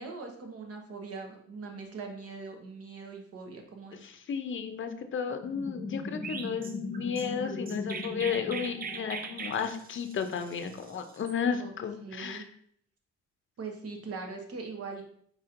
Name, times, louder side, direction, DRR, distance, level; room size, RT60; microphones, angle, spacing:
voice 1, 0.0-4.0 11.6-11.7 12.0-12.5 13.6-15.0, right 4 dB, 50° right, 3 dB, 1.1 m, -41 dB
voice 2, 4.0-12.4, left 6 dB, 40° left, 8 dB, 0.6 m, -33 dB
sound 1, 5.3-9.8, left 3 dB, 20° left, 1.1 m, -39 dB
Chirp tweet, 6.2-11.4, right 5 dB, 30° right, 0.6 m, -41 dB
4.8 x 4.2 x 2.5 m, 0.65 s
cardioid pair, 90°, 30 cm